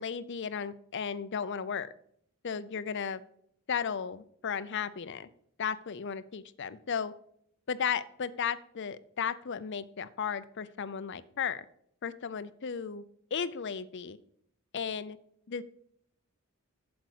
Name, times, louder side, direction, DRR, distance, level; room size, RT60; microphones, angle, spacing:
voice 1, 0.0-1.9 2.4-3.2 3.7-5.3 5.6-7.1 7.7-11.6 12.0-13.0 13.3-14.2 14.7-15.2 15.5-15.6, left 7 dB, 55° left, 15 dB, 0.5 m, -35 dB
7.9 x 7.9 x 4.9 m, 0.69 s
head